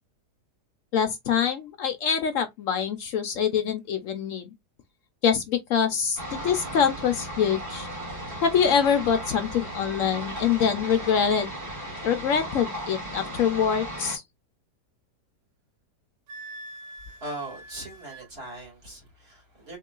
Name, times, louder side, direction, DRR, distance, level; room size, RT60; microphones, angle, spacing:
voice 1, 0.9-4.5 5.2-7.9 8.4-11.5 12.0-14.2, left 7 dB, 70° left, 0.8 m, -25 dB
sound 1, 6.2-14.2, right 1 dB, 10° right, 1.4 m, -36 dB
Wind instrument woodwind instrument, 16.3-18.3, right 1 dB, 80° right, 1.4 m, -44 dB
voice 2, 17.2-19.8, right 2 dB, 40° right, 2.3 m, -39 dB
3.7 x 2.9 x 2.3 m
omnidirectional pair, 1.7 m